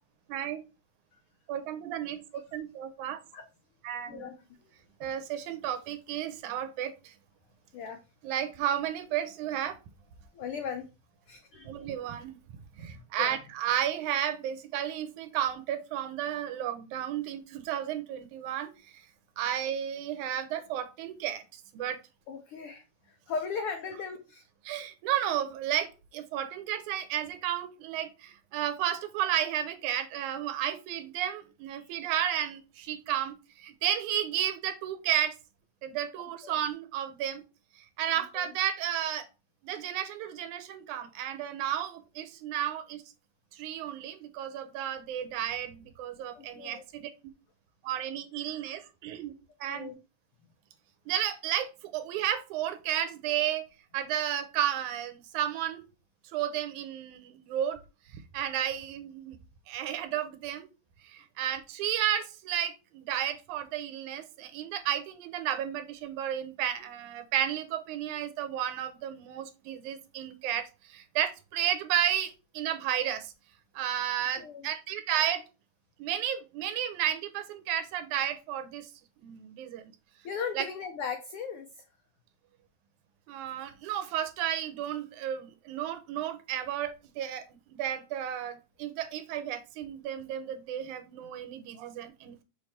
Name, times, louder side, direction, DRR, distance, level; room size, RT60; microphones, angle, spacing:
voice 1, 0.3-0.6 1.5-3.2 3.8-4.3 5.0-7.1 8.2-9.8 11.7-12.4 12.8-19.0 19.4-22.0 24.7-35.4 35.8-37.4 37.8-39.3 39.6-43.0 43.5-47.1 47.8-49.3 49.6-50.0 51.1-53.7 53.9-55.8 56.3-57.8 58.1-59.4 59.7-60.7 61.0-73.3 73.7-75.4 76.0-78.9 79.2-79.8 80.5-80.7 83.3-92.4, right 10 dB, 80° right, 10 dB, 2.2 m, -32 dB
voice 2, 10.3-10.9 11.3-11.8 12.8-13.4 22.3-24.4 31.8-31.9 36.4-36.5 38.0-38.5 46.2-46.8 49.7-49.9 74.4-74.7 80.2-81.8, left 6 dB, 90° left, 6 dB, 1.2 m, -38 dB
6.8 x 3.3 x 4.2 m, 0.30 s
omnidirectional pair, 3.5 m